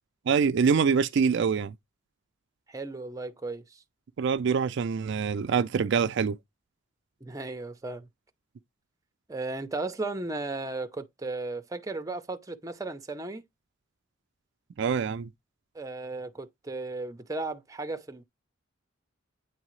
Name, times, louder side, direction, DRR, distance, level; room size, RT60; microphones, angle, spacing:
voice 1, 0.3-1.7 4.2-6.4 14.8-15.3, right 6 dB, 60° right, 0.4 m, -25 dB
voice 2, 2.7-3.8 7.2-8.1 9.3-13.4 15.7-18.2, right 2 dB, 15° right, 0.6 m, -35 dB
8.9 x 3.7 x 3.1 m
head